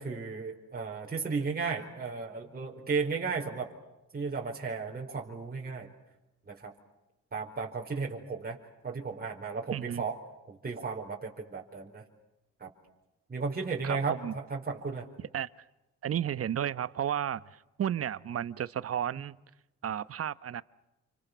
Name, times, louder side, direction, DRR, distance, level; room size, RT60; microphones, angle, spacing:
voice 1, 0.0-3.7 4.1-5.9 6.5-6.7 7.3-8.6 8.8-10.2 10.5-12.0 12.6-12.7 13.3-14.2 14.5-15.1, right 4 dB, 30° right, -1 dB, 4.7 m, -34 dB
voice 2, 9.7-10.0 13.8-14.3 15.3-15.5 16.0-19.4 19.8-20.6, right 10 dB, 50° right, 17 dB, 1.0 m, -33 dB
29.0 x 26.5 x 6.9 m, 0.98 s
cardioid pair, 90°, 30 cm